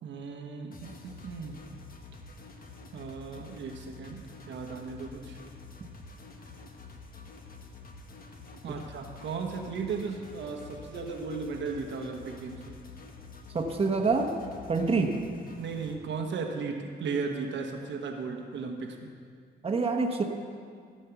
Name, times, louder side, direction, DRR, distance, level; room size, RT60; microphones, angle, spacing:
voice 1, 0.0-1.6 2.9-5.4 8.6-12.8 15.6-19.1, right 4 dB, 70° right, 2 dB, 1.2 m, -36 dB
sound 1, 0.7-15.9, left 3 dB, 45° left, 1.4 m, -48 dB
voice 2, 13.5-14.3 14.7-15.2 19.6-20.2, right 4 dB, 30° right, 2 dB, 1.2 m, -26 dB
15.5 x 5.4 x 7.0 m, 2.1 s
cardioid pair, 90°, 20 cm